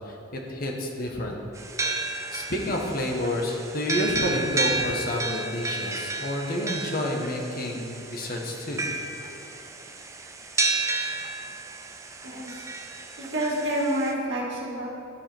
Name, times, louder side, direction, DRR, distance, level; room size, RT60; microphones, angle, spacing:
voice 1, 0.1-1.4 2.3-8.8, left 1 dB, 45° left, 0 dB, 1.1 m, -29 dB
sound 1, 1.6-14.1, right 3 dB, 15° right, 0.5 m, -32 dB
voice 2, 12.2-12.7 13.2-14.9, right 1 dB, 60° right, -4 dB, 1.9 m, -28 dB
12.5 x 4.9 x 4.4 m, 2.9 s
head